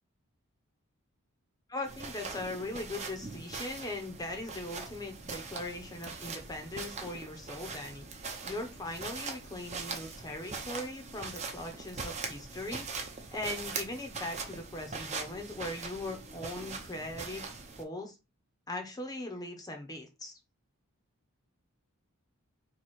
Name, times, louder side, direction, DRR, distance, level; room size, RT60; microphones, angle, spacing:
voice 1, 1.7-8.1 8.4-12.9 13.3-17.4 17.8-18.2 18.7-20.4, left 2 dB, 15° left, 3 dB, 0.6 m, -40 dB
sound 1, 1.8-17.8, right 4 dB, 30° right, 0.6 m, -41 dB
3.0 x 2.7 x 4.2 m, 0.27 s
head